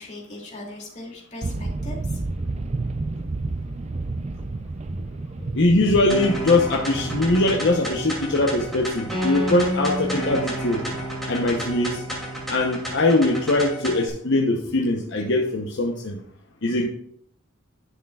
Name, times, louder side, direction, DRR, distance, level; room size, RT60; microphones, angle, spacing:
voice 1, 0.0-2.2 5.4-5.6, left 2 dB, 40° left, -2 dB, 2.5 m, -39 dB
sound 1, 1.4-12.9, right 3 dB, 35° right, 0.5 m, -33 dB
voice 2, 5.5-10.8 11.3-12.0 12.5-16.2 16.6-16.9, left 2 dB, 65° left, 1 dB, 0.9 m, -21 dB
sound 2, 6.1-14.1, equal, ahead, 2.6 m, -30 dB
11.0 x 6.5 x 2.4 m, 0.67 s
head